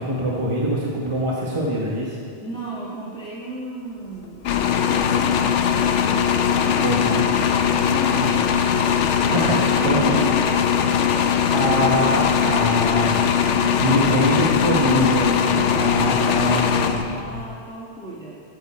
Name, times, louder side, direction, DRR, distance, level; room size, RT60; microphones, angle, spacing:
voice 1, 0.0-2.2 6.8-7.2 8.2-8.3 9.3-10.2 11.5-13.2 13.8-17.4, right 1 dB, 25° right, -4 dB, 1.2 m, -24 dB
voice 2, 2.4-4.4 4.7-7.4 7.7-12.3 13.5-13.9 14.9-18.4, right 1 dB, 5° left, -8 dB, 1.5 m, -34 dB
sound 1, 4.4-17.4, left 8 dB, 85° left, 1.0 m, -20 dB
14.5 x 8.3 x 4.4 m, 2.3 s
omnidirectional pair, 1.2 m